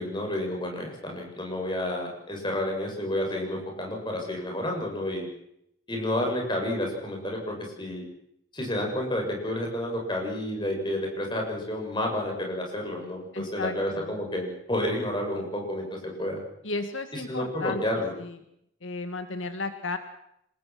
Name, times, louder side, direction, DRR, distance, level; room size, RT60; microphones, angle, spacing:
voice 1, 0.0-5.3 5.9-8.1 8.5-16.4 17.1-18.1, left 1 dB, 25° left, 1 dB, 7.7 m, -30 dB
voice 2, 13.3-14.1 16.6-17.8 18.2-18.4 18.8-20.0, left 3 dB, 85° left, 8 dB, 2.0 m, -34 dB
27.5 x 20.0 x 6.2 m, 0.75 s
head